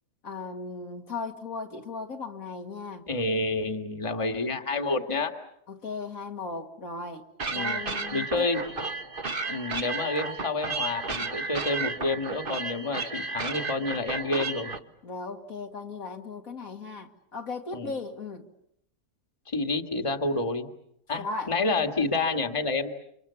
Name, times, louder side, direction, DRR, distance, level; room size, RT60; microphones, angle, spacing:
voice 1, 0.2-3.0 5.7-7.3 7.5-8.5 15.0-18.5 21.2-21.5, left 4 dB, 60° left, 2.5 m, -37 dB
voice 2, 3.1-5.3 7.5-7.8 8.1-8.6 9.4-14.7 17.7-17.9 19.5-20.7 21.1-22.9, left 3 dB, 20° left, 1.9 m, -29 dB
sound 1, 7.4-14.8, right 4 dB, 35° right, 1.5 m, -33 dB
29.0 x 26.5 x 7.1 m
omnidirectional pair, 1.6 m